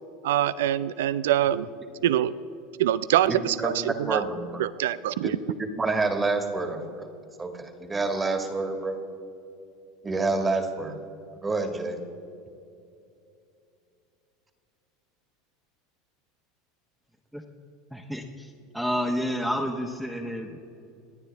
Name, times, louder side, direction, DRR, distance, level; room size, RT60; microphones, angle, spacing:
voice 1, 0.2-1.7 2.0-2.3 2.8-4.2 4.6-5.4, right 12 dB, 80° right, 17 dB, 0.4 m, -24 dB
voice 2, 3.3-3.7 4.1-4.6 5.2-5.3 5.6-7.1 7.4-9.0 10.0-11.0 11.4-12.0, right 3 dB, 20° right, 5 dB, 1.9 m, -28 dB
voice 3, 17.9-18.5 18.7-20.6, equal, 5° right, 0 dB, 1.2 m, -29 dB
28.5 x 9.7 x 3.5 m, 2.6 s
hypercardioid pair, 90°, 0 cm